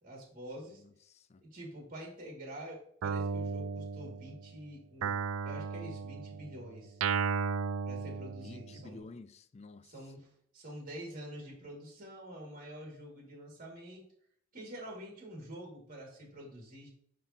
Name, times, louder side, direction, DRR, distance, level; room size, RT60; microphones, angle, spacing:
voice 1, 0.0-0.8 1.4-5.2 5.4-7.0 7.8-9.0 9.8-10.3 10.5-14.0 14.5-16.9, right 1 dB, 40° right, 2.1 m, -47 dB
voice 2, 0.7-1.4 8.4-9.9, left 3 dB, 30° left, 0.4 m, -51 dB
Guitar, 3.0-4.5 5.0-8.9, right 6 dB, 75° right, 0.4 m, -35 dB
10.0 x 3.8 x 2.8 m
head